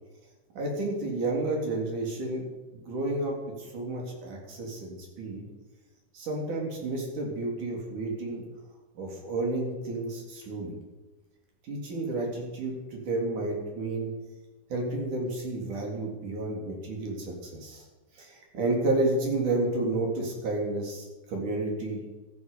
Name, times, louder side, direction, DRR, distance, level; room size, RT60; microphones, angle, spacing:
voice 1, 0.5-5.4 6.1-8.4 8.9-10.7 11.7-14.1 14.7-17.8 18.2-22.0, right 2 dB, 90° right, -1 dB, 5.0 m, -31 dB
13.5 x 11.5 x 8.4 m, 1.2 s
omnidirectional pair, 3.4 m